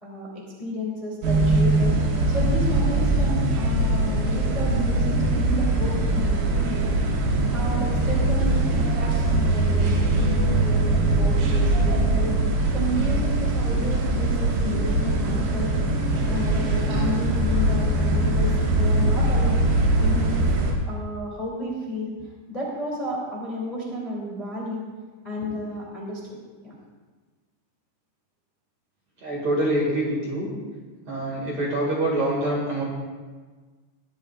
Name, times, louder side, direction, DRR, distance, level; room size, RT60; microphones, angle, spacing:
voice 1, 0.0-2.0 2.3-6.9 7.5-12.3 12.7-15.7 16.2-19.7 20.0-20.4 20.9-24.8 25.2-26.8, left 1 dB, 15° left, -4 dB, 1.8 m, -32 dB
sound 1, 1.2-20.7, right 2 dB, 85° right, 4.4 m, -22 dB
voice 2, 29.2-30.5 31.1-32.8, right 1 dB, 45° right, -4 dB, 2.6 m, -25 dB
21.5 x 12.5 x 2.5 m, 1.4 s
omnidirectional pair, 5.4 m